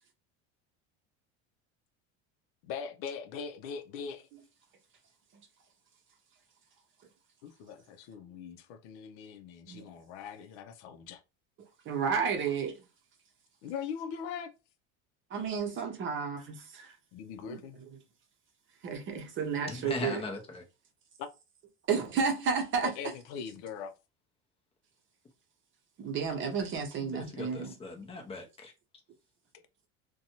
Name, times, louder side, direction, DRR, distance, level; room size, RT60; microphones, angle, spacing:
voice 1, 2.6-4.3 7.4-11.2 13.6-14.5 17.1-17.8 21.2-21.3 22.8-23.9, left 7 dB, 80° left, 0.6 m, -41 dB
voice 2, 11.8-12.8 15.3-17.0 17.4-17.6 18.8-20.2 21.9-22.9 26.0-27.8, right 6 dB, 35° right, 0.7 m, -32 dB
voice 3, 19.7-20.6 27.0-28.7, left 3 dB, 15° left, 0.6 m, -39 dB
2.6 x 2.2 x 2.8 m
cardioid pair, 140°, 34 cm